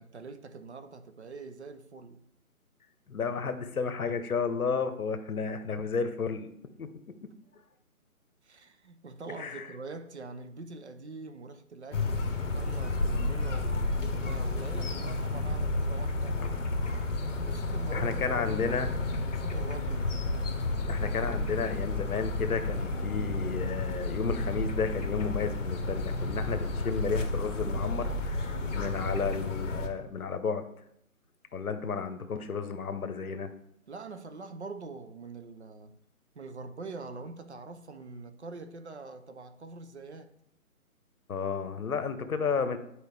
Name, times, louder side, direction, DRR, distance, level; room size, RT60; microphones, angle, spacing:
voice 1, 0.0-2.2 8.4-16.4 17.4-18.8 19.2-20.2 28.5-28.8 33.9-35.9 36.3-40.3, right 3 dB, 50° right, 8 dB, 0.7 m, -44 dB
voice 2, 3.1-6.5 6.8-6.9 9.4-9.7 17.9-18.9 20.9-30.7 31.5-33.5 41.3-42.8, left 5 dB, 75° left, 10 dB, 1.0 m, -32 dB
sound 1, 11.9-29.9, left 2 dB, 55° left, 1.1 m, -31 dB
10.5 x 4.6 x 3.4 m, 0.76 s
hypercardioid pair, 165°, 44 cm